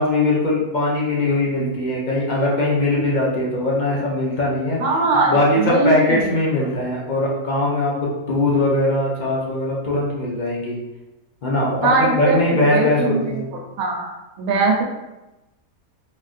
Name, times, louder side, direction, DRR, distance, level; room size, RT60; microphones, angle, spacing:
voice 1, 0.0-4.8 5.3-10.7 11.4-13.5, left 1 dB, 55° left, -4 dB, 0.5 m, -20 dB
voice 2, 4.8-6.3 6.6-6.7 11.8-13.4 13.8-14.1 14.4-14.8, right 3 dB, 80° right, 0 dB, 1.1 m, -21 dB
3.5 x 2.4 x 2.5 m, 1.0 s
omnidirectional pair, 1.5 m